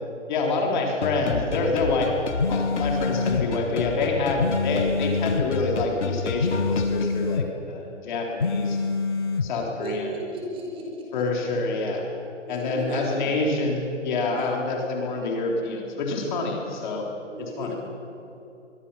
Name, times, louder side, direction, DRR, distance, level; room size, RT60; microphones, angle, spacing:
voice 1, 0.3-2.1 2.5-8.8 9.4-10.1 11.1-12.1 12.5-17.1 17.4-17.7, left 3 dB, 40° left, 0 dB, 3.8 m, -27 dB
sound 1, 1.0-7.0, left 5 dB, 65° left, 1.7 m, -31 dB
sound 2, 2.4-3.5 4.4-5.5 6.4-7.5 8.4-9.5, left 4 dB, 20° left, 0.4 m, -26 dB
voice 2, 9.8-11.1 12.5-13.3 14.4-14.5 17.3-17.8, right 1 dB, 15° right, -1 dB, 4.4 m, -34 dB
24.5 x 23.5 x 5.7 m, 2.9 s
figure-of-eight pair, 145°, 38 cm